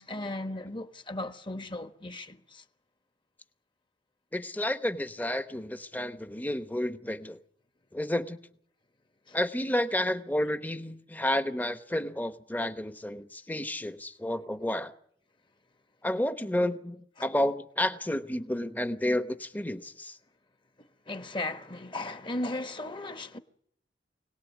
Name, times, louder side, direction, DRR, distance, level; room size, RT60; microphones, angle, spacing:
voice 1, 0.0-2.6 9.3-9.4 17.2-17.3 21.1-23.4, left 2 dB, 25° left, 1.3 m, -36 dB
voice 2, 4.3-7.4 7.9-8.4 9.3-14.9 16.0-20.1, left 1 dB, 10° left, 1.0 m, -31 dB
26.0 x 18.5 x 9.2 m
head